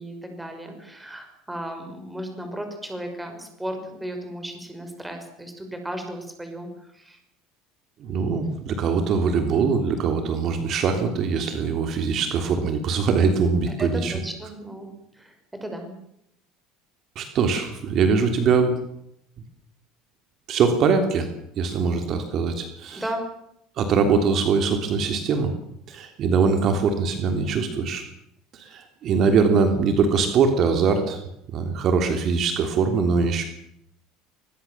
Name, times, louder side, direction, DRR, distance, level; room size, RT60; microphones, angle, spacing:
voice 1, 0.0-6.7 6.9-7.2 13.8-15.3 15.6-15.9 23.0-23.2, right 1 dB, 5° right, 5 dB, 5.8 m, -35 dB
voice 2, 8.0-14.2 17.1-18.8 20.5-21.3 21.6-23.0 23.8-25.5 25.9-28.0 28.5-31.2 31.5-33.4, right 5 dB, 45° right, 6 dB, 3.3 m, -22 dB
24.5 x 21.0 x 7.4 m, 0.77 s
cardioid pair, 130°, 0 cm